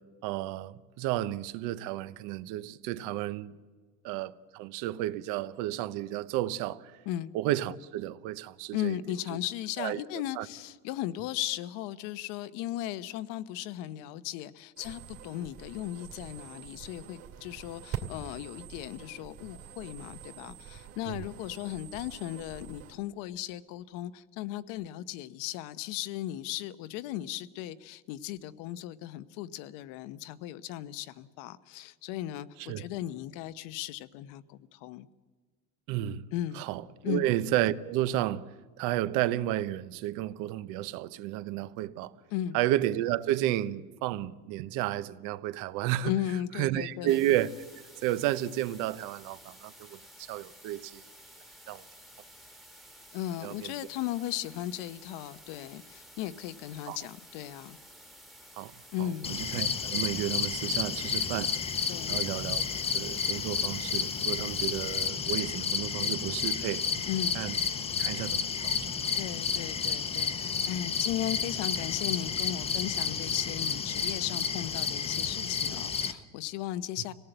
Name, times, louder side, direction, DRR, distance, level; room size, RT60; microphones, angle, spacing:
voice 1, 0.2-3.6 4.0-6.9 7.3-9.0 9.8-10.0 10.4-10.5 21.1-21.2 32.7-32.9 35.9-36.2 36.6-38.5 38.8-42.1 42.5-46.1 46.6-47.5 48.0-51.0 51.7-51.8 53.4-53.7 56.9-57.0 58.6-58.7 59.0-61.6 62.1-62.6 62.9-66.9 67.3-67.5 68.0-68.7, right 14 dB, 65° right, 0.9 m, -32 dB
voice 2, 8.7-35.1 36.3-36.7 37.0-37.3 42.3-42.6 46.0-47.2 53.1-57.8 58.9-59.3 61.9-62.2 67.1-67.4 69.2-77.1, left 13 dB, 70° left, 0.9 m, -36 dB
sound 1, 14.8-22.9, right 8 dB, 45° right, 2.6 m, -45 dB
sound 2, 47.1-65.1, equal, ahead, 1.4 m, -53 dB
sound 3, 59.2-76.1, left 6 dB, 20° left, 0.7 m, -31 dB
25.5 x 18.0 x 7.9 m
cardioid pair, 175°, 33 cm